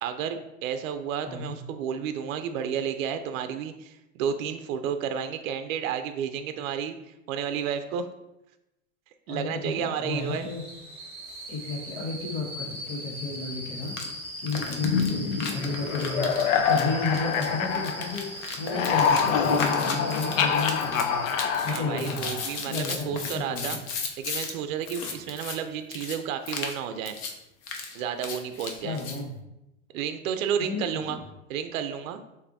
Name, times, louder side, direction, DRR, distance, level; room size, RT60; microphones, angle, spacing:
voice 1, 0.0-8.1 9.3-10.5 21.6-23.8 24.2-27.2 27.9-29.0 29.9-31.2 31.5-32.2, right 8 dB, 75° right, 9 dB, 0.5 m, -31 dB
voice 2, 9.3-10.6 11.5-13.9 14.4-21.2 21.6-22.4 22.6-23.8 28.8-29.3 30.6-31.2, left 3 dB, 55° left, -1 dB, 1.5 m, -32 dB
sound 1, 10.2-21.7 23.2-23.4, equal, 15° right, 1.4 m, -40 dB
sound 2, 13.9-14.1 14.5-24.5 24.8-25.6 25.9-26.2 26.5-26.8 27.1-27.3 27.6-29.2, left 5 dB, 30° left, 0.4 m, -35 dB
sound 3, 14.8-18.3 18.6-22.6, left 6 dB, 75° left, 0.6 m, -26 dB
6.7 x 2.7 x 2.6 m, 0.92 s
supercardioid pair, 155°, 40 cm